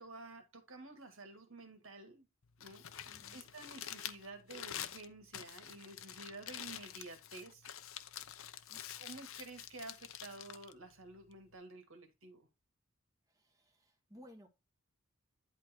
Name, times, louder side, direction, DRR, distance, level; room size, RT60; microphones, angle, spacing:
voice 1, 0.0-2.3 2.6-7.7 8.9-12.5, right 2 dB, 70° right, 2.2 m, -51 dB
Crumpling crinkling, 2.4-11.6, left 10 dB, 70° left, 0.8 m, -48 dB
voice 2, 3.1-3.5 8.7-8.8 13.3-14.5, equal, 15° right, 1.5 m, -59 dB
10.5 x 3.8 x 4.5 m
head